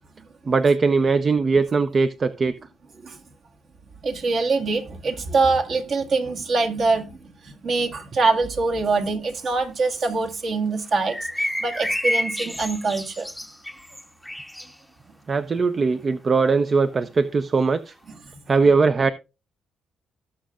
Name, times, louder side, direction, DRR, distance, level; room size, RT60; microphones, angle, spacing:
voice 1, 0.5-2.6 15.3-17.9 18.5-19.1, right 4 dB, 40° right, 0.6 m, -20 dB
voice 2, 4.0-13.3 18.3-18.4, right 3 dB, 55° right, 1.9 m, -24 dB
sound 1, 11.1-14.7, left 1 dB, ahead, 0.8 m, -29 dB
18.0 x 6.4 x 2.4 m
cardioid pair, 90°, 0 cm